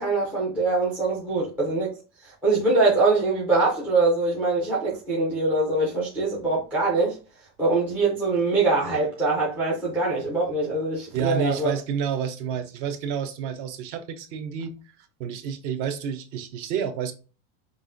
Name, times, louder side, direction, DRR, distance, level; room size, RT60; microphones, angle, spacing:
voice 1, 0.0-1.9 2.2-7.2 7.6-11.7, right 3 dB, 5° right, 0.3 m, -23 dB
voice 2, 11.1-14.8 15.2-17.1, right 8 dB, 50° right, 0.7 m, -29 dB
5.4 x 2.4 x 2.5 m
cardioid pair, 170°, 45 cm